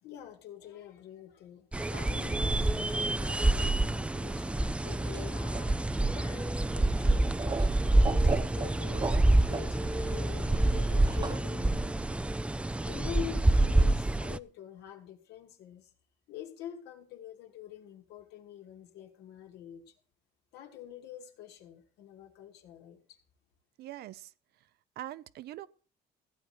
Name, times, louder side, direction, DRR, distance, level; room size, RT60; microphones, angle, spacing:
voice 1, 0.0-7.7 8.1-12.1 12.8-15.9 16.3-20.0 20.5-23.2, left 11 dB, 80° left, 2.6 m, -46 dB
sound 1, 1.7-14.4, right 2 dB, 5° right, 0.5 m, -27 dB
sound 2, 4.9-11.4, right 2 dB, 25° right, 1.1 m, -36 dB
voice 2, 23.8-24.3 25.0-25.7, right 14 dB, 70° right, 0.7 m, -42 dB
15.0 x 9.1 x 4.6 m
cardioid pair, 110°, 17 cm